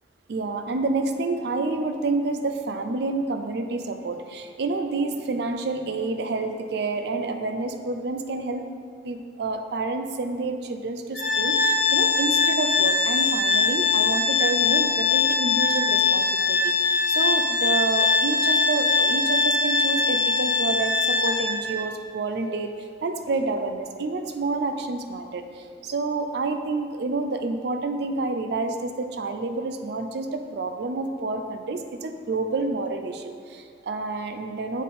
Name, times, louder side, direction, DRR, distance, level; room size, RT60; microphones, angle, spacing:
voice 1, 0.3-8.7 9.0-22.7 23.0-34.8, right 3 dB, 60° right, 7 dB, 0.4 m, -29 dB
Organ, 11.1-21.8, left 4 dB, 65° left, 1.6 m, -22 dB
7.1 x 4.2 x 3.7 m, 2.2 s
head